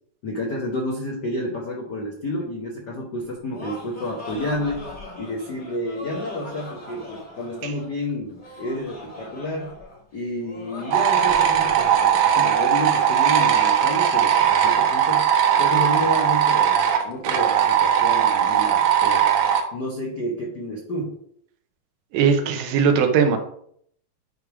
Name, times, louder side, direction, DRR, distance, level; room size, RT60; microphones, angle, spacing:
voice 1, 0.2-4.8 5.2-9.7 10.1-15.3 15.6-19.3 19.7-21.2, left 1 dB, 75° left, -1 dB, 0.9 m, -30 dB
Laughter, 3.2-12.4, left 2 dB, 20° left, 1.6 m, -40 dB
sound 1, 10.9-19.6, right 9 dB, 70° right, 1.4 m, -19 dB
voice 2, 22.1-23.4, right 6 dB, 90° right, 6 dB, 2.5 m, -19 dB
9.3 x 3.4 x 4.8 m, 0.67 s
omnidirectional pair, 3.7 m